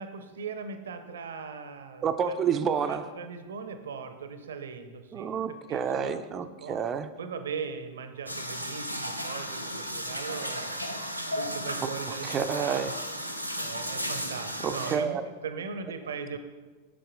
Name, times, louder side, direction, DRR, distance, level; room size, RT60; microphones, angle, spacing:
voice 1, 0.0-2.4 2.8-6.2 6.6-6.8 7.2-12.3 12.6-12.8 13.5-16.4, right 5 dB, 65° right, 9 dB, 0.7 m, -39 dB
voice 2, 2.0-3.1 5.1-7.1 11.8-11.9 12.2-12.9 14.6-15.2, right 7 dB, 25° right, 11 dB, 0.4 m, -29 dB
sound 1, 8.3-15.0, equal, 90° left, 0.6 m, -34 dB
6.9 x 6.9 x 3.9 m, 1.3 s
figure-of-eight pair, 90°, 0 cm